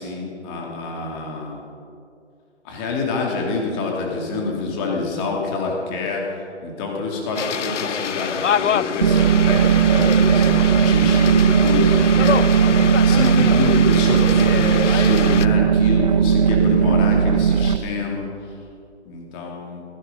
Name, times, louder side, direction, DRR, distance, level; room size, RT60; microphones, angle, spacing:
voice 1, 0.0-1.6 2.6-6.2 6.6-12.7 12.9-18.3 19.1-19.8, left 4 dB, 20° left, -1 dB, 2.7 m, -26 dB
sound 1, 7.3-15.5, left 8 dB, 85° left, 0.6 m, -26 dB
sound 2, 9.0-17.8, right 8 dB, 35° right, 0.6 m, -17 dB
16.5 x 16.0 x 5.4 m, 2.5 s
figure-of-eight pair, 145°, 36 cm